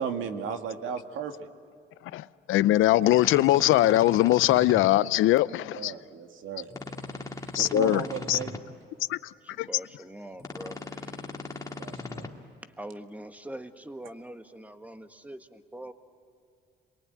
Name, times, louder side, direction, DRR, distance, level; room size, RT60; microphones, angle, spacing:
voice 1, 0.0-1.5 5.8-6.7 7.6-8.6 11.8-12.3, right 7 dB, 80° right, 2.1 m, -35 dB
voice 2, 2.1-5.9 7.5-8.0 8.3-8.4 9.1-9.2 9.6-9.7, left 15 dB, 90° left, 0.6 m, -21 dB
sound 1, 3.0-4.9 6.7-8.6 10.4-12.3, left 3 dB, 15° left, 2.3 m, -38 dB
voice 3, 9.4-11.2 12.6-15.9, right 1 dB, 5° right, 1.6 m, -43 dB
28.0 x 23.0 x 9.2 m
cardioid pair, 90°, 20 cm